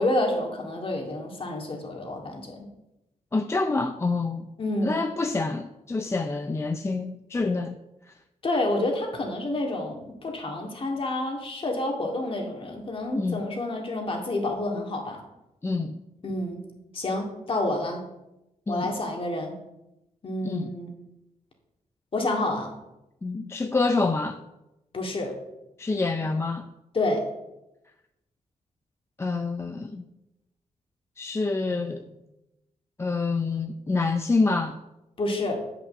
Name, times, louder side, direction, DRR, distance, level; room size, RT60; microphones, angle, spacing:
voice 1, 0.0-2.6 4.6-5.1 8.4-15.2 16.2-16.6 16.9-18.0 18.7-19.5 20.2-20.9 22.1-22.7 24.9-25.4 26.9-27.2 35.2-35.6, left 2 dB, 45° left, 2 dB, 2.0 m, -28 dB
voice 2, 3.3-4.5 4.8-7.7 13.2-13.4 15.6-16.0 18.7-18.9 20.4-20.7 23.2-24.4 25.8-26.7 29.2-30.0 31.2-32.0 33.0-34.8, left 3 dB, 20° left, 7 dB, 0.5 m, -27 dB
8.0 x 6.0 x 6.5 m, 0.93 s
cardioid pair, 95°, 13 cm